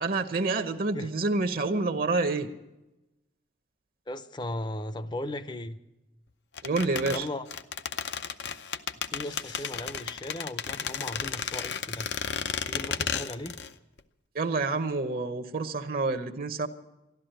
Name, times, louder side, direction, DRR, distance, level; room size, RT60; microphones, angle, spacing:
voice 1, 0.0-2.5 6.6-7.3 14.3-16.7, right 3 dB, 55° right, 0.8 m, -28 dB
voice 2, 4.1-5.8 7.1-7.5 9.1-12.1 12.7-13.6, left 1 dB, 25° left, 0.6 m, -37 dB
sound 1, 6.6-13.7 14.0-14.1, left 7 dB, 70° left, 0.6 m, -33 dB
sound 2, 9.1-9.8, left 6 dB, 85° left, 1.1 m, -45 dB
13.5 x 12.0 x 8.9 m
head